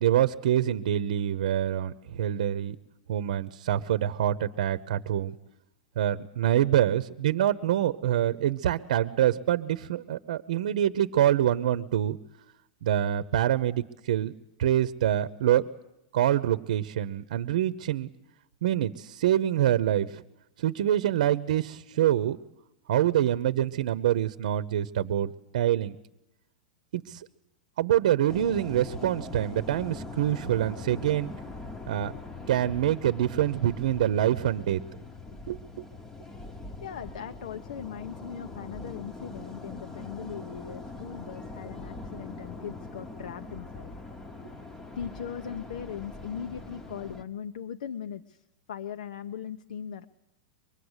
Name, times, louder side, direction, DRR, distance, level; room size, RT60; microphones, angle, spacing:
voice 1, 0.0-2.8 3.1-5.4 6.0-12.2 12.8-14.3 14.6-15.7 16.1-18.1 18.6-20.2 20.6-22.4 22.9-26.0 26.9-27.3 27.8-31.3 31.9-32.1 32.5-34.8 35.5-35.8, right 11 dB, 65° right, 14 dB, 0.8 m, -26 dB
sound 1, 28.3-47.2, left 3 dB, 10° left, 1.0 m, -42 dB
voice 2, 36.8-43.9 45.0-50.0, left 8 dB, 80° left, 8 dB, 1.0 m, -39 dB
24.0 x 21.5 x 8.1 m, 0.87 s
supercardioid pair, 165°, 4 cm